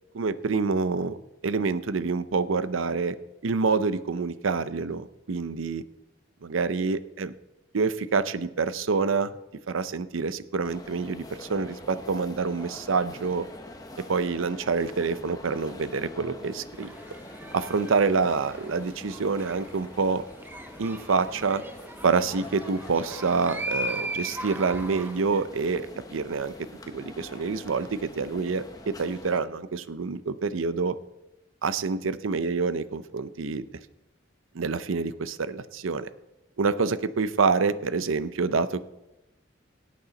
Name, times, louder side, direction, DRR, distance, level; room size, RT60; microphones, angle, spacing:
voice 1, 0.1-1.2 1.4-3.1 3.4-5.8 6.4-7.3 7.7-9.3 9.7-13.5 14.1-16.9 17.5-20.2 20.8-21.6 22.0-26.5 26.9-31.0 31.6-33.7 34.5-36.1 36.6-38.8, right 4 dB, 85° right, 14 dB, 0.6 m, -27 dB
sound 1, 10.6-29.4, left 2 dB, 20° left, 0.9 m, -45 dB
sound 2, 16.7-25.4, right 1 dB, 10° right, 0.7 m, -39 dB
18.0 x 8.5 x 4.0 m, 0.95 s
head